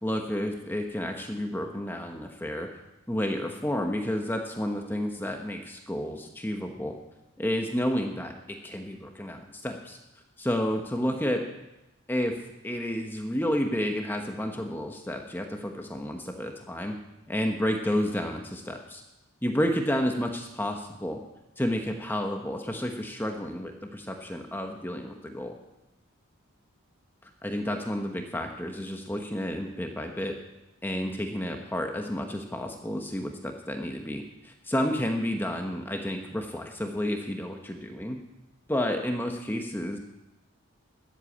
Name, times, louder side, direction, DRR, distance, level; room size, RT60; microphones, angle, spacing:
voice 1, 0.0-2.7 3.1-6.9 7.4-10.0 10.4-11.5 12.1-12.3 12.6-16.9 17.3-19.0 19.4-21.2 21.6-25.6 27.2-30.3 30.8-38.2 38.7-40.0, equal, 10° left, 3 dB, 1.0 m, -31 dB
13.0 x 8.3 x 8.5 m, 0.95 s
head